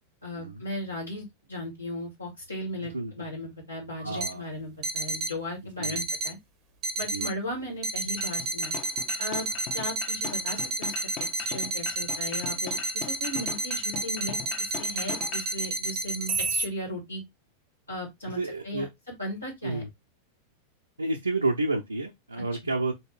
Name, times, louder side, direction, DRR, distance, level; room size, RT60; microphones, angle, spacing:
voice 1, 0.2-6.4 7.0-8.7 9.2-9.5 9.7-10.9 11.3-17.2 17.9-18.4 18.6-18.8 19.2-19.8, left 1 dB, 85° left, 1.9 m, -36 dB
voice 2, 2.8-3.1 4.0-4.4 5.8-6.0 7.1-7.3 18.3-18.9 19.6-19.9 21.0-22.9, right 2 dB, 80° right, 0.5 m, -30 dB
sound 1, 4.2-4.3 4.8-5.3 5.8-6.3 6.8-7.3 7.8-16.7, right 3 dB, 35° right, 0.7 m, -30 dB
sound 2, 8.2-15.5, left 7 dB, 35° left, 0.9 m, -40 dB
4.3 x 2.8 x 3.3 m
figure-of-eight pair, 90°, 0 cm